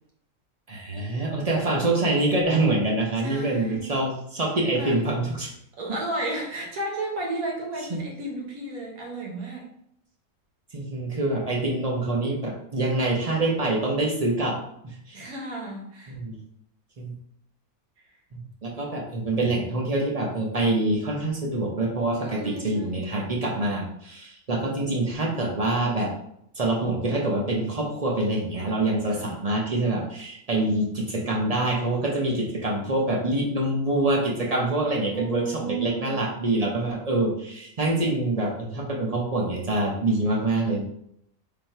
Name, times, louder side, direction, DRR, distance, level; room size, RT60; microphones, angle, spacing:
voice 1, 0.7-5.5 7.9-8.0 10.7-14.6 14.8-15.2 16.1-16.4 17.0-17.1 18.3-26.1 26.6-40.8, right 2 dB, 40° right, -1 dB, 0.5 m, -25 dB
voice 2, 3.2-3.9 4.8-5.0 5.8-9.7 15.1-16.2 22.2-23.0 29.1-29.3 35.1-36.2, right 1 dB, 80° right, -1 dB, 1.5 m, -33 dB
3.7 x 2.6 x 4.3 m, 0.73 s
omnidirectional pair, 1.5 m